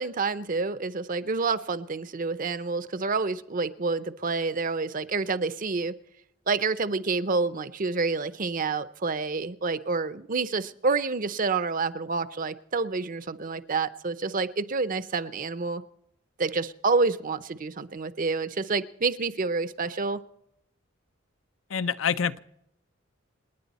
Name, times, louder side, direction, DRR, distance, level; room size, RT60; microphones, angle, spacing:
voice 1, 0.0-5.9 6.5-15.8 16.4-20.2, right 4 dB, 45° right, 13 dB, 0.7 m, -28 dB
voice 2, 21.7-22.4, left 7 dB, 75° left, 15 dB, 0.6 m, -26 dB
27.5 x 9.9 x 4.2 m, 0.80 s
head